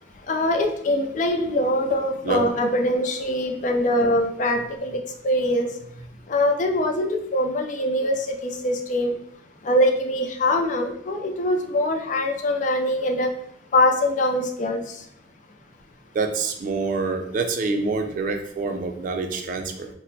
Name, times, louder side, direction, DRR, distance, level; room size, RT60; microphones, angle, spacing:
voice 1, 0.3-5.7 6.3-9.2 9.6-13.3 13.7-15.0, left 1 dB, 45° left, 4 dB, 0.4 m, -23 dB
voice 2, 16.1-19.9, right 4 dB, 45° right, 5 dB, 0.3 m, -26 dB
4.1 x 2.0 x 2.7 m, 0.69 s
head